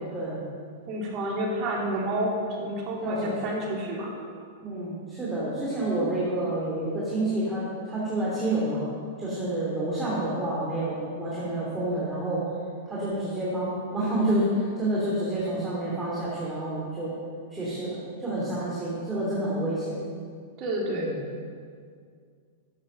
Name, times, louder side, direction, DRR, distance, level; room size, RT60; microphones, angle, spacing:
voice 1, 0.1-0.4 3.0-3.5 4.6-8.8 9.2-12.5 12.9-17.2 17.5-20.0 20.9-21.2, right 1 dB, 10° right, -7 dB, 2.7 m, -29 dB
voice 2, 0.9-4.1 20.6-21.1, right 1 dB, 40° right, -2 dB, 2.6 m, -29 dB
11.5 x 8.0 x 5.4 m, 2.1 s
hypercardioid pair, 135°, 0 cm